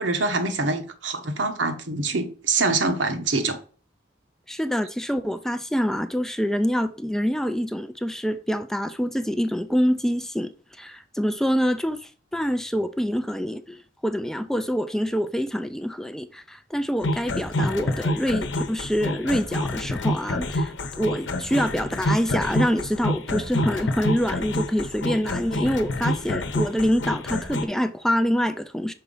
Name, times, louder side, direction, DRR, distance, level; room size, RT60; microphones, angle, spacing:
voice 1, 0.0-3.6, right 3 dB, 75° right, 1.0 m, -25 dB
voice 2, 4.5-10.5 10.8-28.9, equal, 5° left, 0.3 m, -26 dB
sound 1, 17.0-27.6, left 1 dB, 75° left, 0.9 m, -27 dB
5.7 x 4.1 x 5.4 m
head